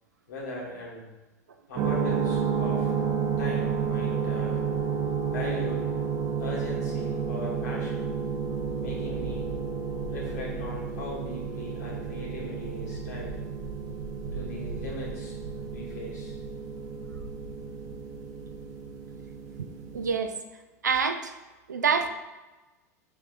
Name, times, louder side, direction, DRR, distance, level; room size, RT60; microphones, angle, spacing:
voice 1, 0.3-1.0 1.7-2.9 3.4-4.7 5.2-5.9 6.4-8.1 8.8-9.5 10.1-13.4 14.3-15.3 15.7-16.4, left 1 dB, 70° left, -3 dB, 1.4 m, -39 dB
sound 1, 1.8-20.1, right 6 dB, 45° right, 0.6 m, -31 dB
voice 2, 19.9-20.3 20.8-21.3 21.7-22.1, right 5 dB, 85° right, 7 dB, 0.4 m, -26 dB
5.5 x 3.4 x 2.5 m, 1.2 s
figure-of-eight pair, 80°, 9 cm